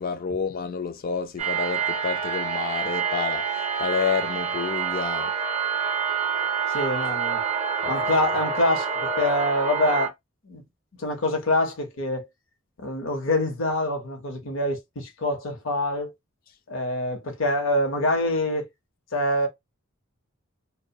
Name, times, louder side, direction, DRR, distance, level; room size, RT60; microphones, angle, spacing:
voice 1, 0.0-5.3 7.8-7.9, left 6 dB, 45° left, 0.4 m, -29 dB
sound 1, 1.4-10.1, right 6 dB, 30° right, 0.5 m, -27 dB
voice 2, 6.7-7.4 7.8-8.9 9.2-10.1 10.4-10.6 11.0-12.3 12.8-16.1 16.7-18.7 19.1-19.5, left 1 dB, 65° left, 0.7 m, -25 dB
2.3 x 2.0 x 2.7 m
head